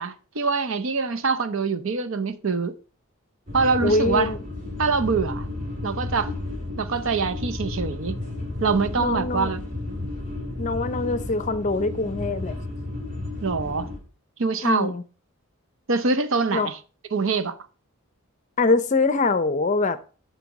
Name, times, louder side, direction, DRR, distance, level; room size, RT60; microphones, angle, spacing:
voice 1, 0.0-2.7 3.5-4.3 4.8-5.5 5.8-6.3 6.8-8.2 8.6-9.6 13.4-13.9 14.4-14.9 15.9-16.8 17.1-17.6, right 4 dB, 60° right, 0.7 m, -24 dB
sound 1, 3.5-14.0, left 2 dB, 35° right, 2.6 m, -32 dB
voice 2, 3.8-4.4 9.0-9.5 10.6-12.5 14.6-15.0 16.5-16.7 18.6-20.0, left 3 dB, 35° left, 0.5 m, -23 dB
11.0 x 4.1 x 4.7 m
head